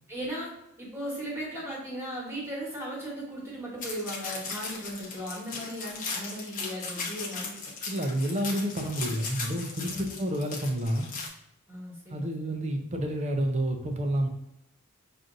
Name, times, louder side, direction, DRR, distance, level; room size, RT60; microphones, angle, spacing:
voice 1, 0.1-0.5 0.8-7.7 9.8-10.2 11.7-12.6, equal, 10° right, -5 dB, 1.4 m, -37 dB
sound 1, 3.8-11.3, left 4 dB, 35° left, 0.9 m, -37 dB
voice 2, 7.9-11.1 12.1-14.3, right 1 dB, 30° right, 3 dB, 0.6 m, -29 dB
5.9 x 2.6 x 2.6 m, 0.84 s
head